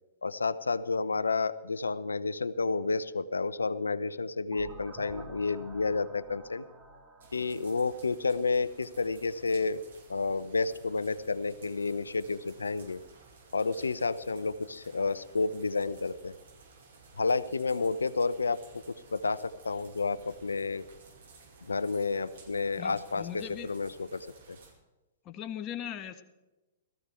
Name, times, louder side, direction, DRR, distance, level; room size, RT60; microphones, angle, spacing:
voice 1, 0.2-6.6 7.3-9.8 10.1-13.0 13.5-16.3 17.2-18.6 18.9-20.8 21.6-24.6, left 4 dB, 90° left, 16 dB, 0.7 m, -30 dB
sound 1, 4.5-9.2, right 3 dB, 25° right, 3.0 m, -50 dB
sound 2, 7.2-24.7, right 4 dB, 70° right, 5.5 m, -56 dB
voice 2, 22.8-23.7 25.2-26.2, left 10 dB, 35° left, 8 dB, 1.6 m, -39 dB
18.0 x 14.5 x 4.5 m, 1.1 s
hypercardioid pair, 115°, 0 cm